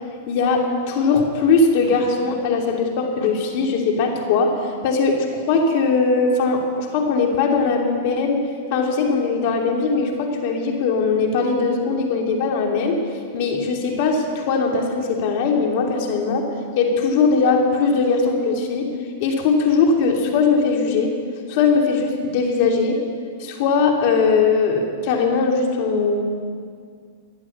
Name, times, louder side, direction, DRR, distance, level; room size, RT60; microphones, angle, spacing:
voice 1, 0.3-4.5 4.8-8.4 8.7-13.0 13.3-16.5 16.7-18.9 19.2-21.1 21.5-23.0 23.4-26.2, left 4 dB, 55° left, 1 dB, 3.0 m, -20 dB
17.0 x 11.0 x 7.4 m, 2.1 s
hypercardioid pair, 110°, 0 cm